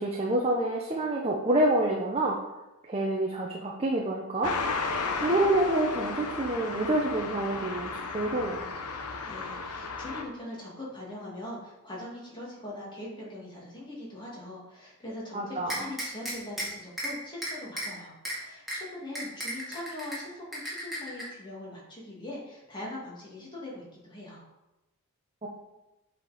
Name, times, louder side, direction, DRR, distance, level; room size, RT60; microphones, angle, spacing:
voice 1, 0.0-2.4 2.8-4.6 5.2-8.6 15.3-15.9 25.4-25.5, right 1 dB, 25° right, -1 dB, 0.8 m, -27 dB
sound 1, 4.4-10.2, left 4 dB, 90° left, 0.9 m, -34 dB
voice 2, 9.3-24.4, left 1 dB, 20° left, -5 dB, 2.2 m, -41 dB
sound 2, 15.7-16.7 17.0-17.1 17.4-17.9 18.3-18.4 18.7-18.8 19.2-20.2 20.5-21.2, equal, ahead, 2.2 m, -33 dB
7.9 x 4.3 x 5.0 m, 0.98 s
head